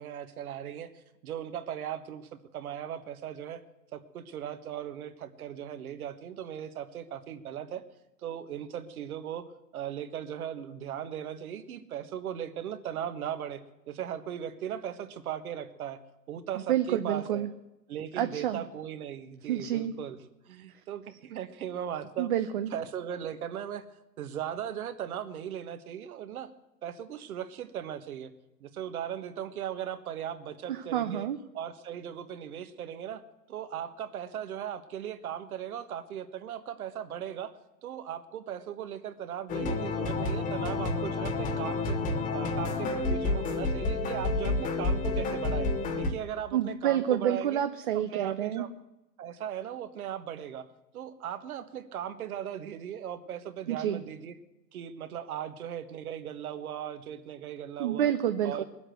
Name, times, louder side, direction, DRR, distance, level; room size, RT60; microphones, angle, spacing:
voice 1, 0.0-3.6 3.9-7.8 8.2-9.4 9.7-13.6 13.9-16.0 16.3-17.5 17.9-20.2 20.5-22.4 22.7-23.8 24.2-26.5 26.8-28.3 28.6-31.3 31.5-33.2 33.5-37.5 37.8-42.0 42.3-45.7 46.0-47.6 47.9-48.7 49.2-50.7 50.9-54.3 54.7-58.1 58.4-58.6, right 9 dB, 60° right, 11 dB, 1.5 m, -38 dB
voice 2, 16.7-17.5 18.2-18.6 19.5-19.9 22.2-22.7 30.7-31.4 46.5-48.7 53.7-54.0 57.8-58.6, right 10 dB, 35° right, 9 dB, 0.5 m, -28 dB
sound 1, 39.5-46.1, left 3 dB, 15° left, 1.0 m, -29 dB
19.5 x 7.9 x 7.8 m, 0.96 s
hypercardioid pair, 130°, 50 cm